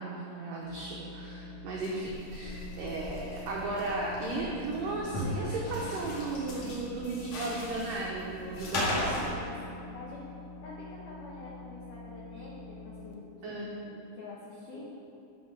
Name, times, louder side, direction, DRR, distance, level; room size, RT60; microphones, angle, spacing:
voice 1, 0.0-9.1 13.4-13.7, right 2 dB, 85° right, -3 dB, 1.9 m, -35 dB
sound 1, 0.6-1.8 2.3-13.1, left 3 dB, 85° left, 1.9 m, -46 dB
sound 2, 1.7-9.3, left 1 dB, 50° left, 2.3 m, -37 dB
voice 2, 8.9-10.3 10.6-14.9, left 2 dB, 70° left, -6 dB, 2.0 m, -46 dB
11.5 x 4.9 x 6.2 m, 2.6 s
omnidirectional pair, 5.2 m